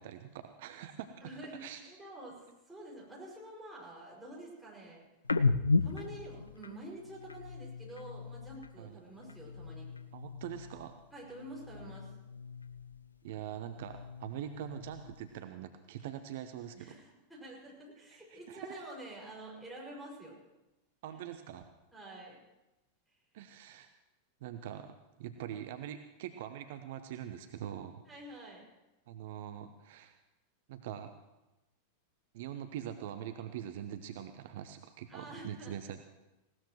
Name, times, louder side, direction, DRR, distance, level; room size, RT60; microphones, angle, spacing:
voice 1, 0.0-1.8 8.8-9.0 10.1-11.0 13.2-16.9 18.3-18.7 21.0-21.6 23.3-23.9 24.4-24.9 25.2-28.0 29.1-30.2 30.7-31.1 32.3-36.1, right 10 dB, 55° right, 9 dB, 0.7 m, -43 dB
voice 2, 1.2-5.1 5.8-9.9 11.1-12.1 16.7-20.4 21.9-22.4 28.1-28.6 35.1-35.8, right 1 dB, 5° right, -4 dB, 5.9 m, -48 dB
sound 1, 5.2-8.8 9.1-11.0 11.2-13.1 13.5-15.3, left 3 dB, 80° left, 0.5 m, -36 dB
19.5 x 17.5 x 3.1 m, 1.0 s
figure-of-eight pair, 90°, 0 cm